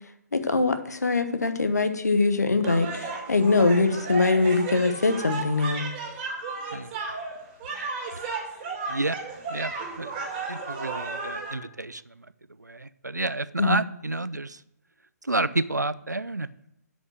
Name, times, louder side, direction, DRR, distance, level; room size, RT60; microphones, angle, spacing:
voice 1, 0.3-5.8 13.6-13.8, left 3 dB, 70° left, 9 dB, 1.1 m, -23 dB
sound 1, 2.6-11.5, right 4 dB, 25° right, 2.4 m, -34 dB
voice 2, 8.9-9.2 9.5-10.1 10.5-12.3 12.6-14.6 15.2-16.5, right 2 dB, 90° right, 16 dB, 0.5 m, -30 dB
8.4 x 5.3 x 7.8 m, 0.84 s
figure-of-eight pair, 135°, 9 cm